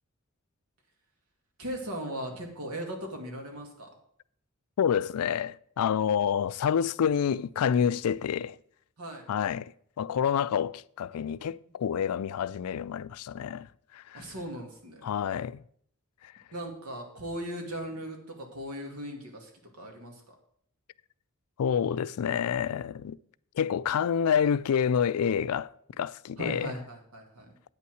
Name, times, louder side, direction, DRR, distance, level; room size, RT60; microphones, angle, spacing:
voice 1, 1.6-3.9 9.0-9.2 14.1-15.1 16.5-20.4 26.4-27.5, right 1 dB, 90° right, 2.3 m, -38 dB
voice 2, 4.8-8.6 9.3-9.7 10.0-13.7 13.9-14.2 15.0-15.6 21.6-23.2 23.6-25.7 26.0-26.7, left 8 dB, 85° left, 0.4 m, -28 dB
8.8 x 5.6 x 7.8 m
head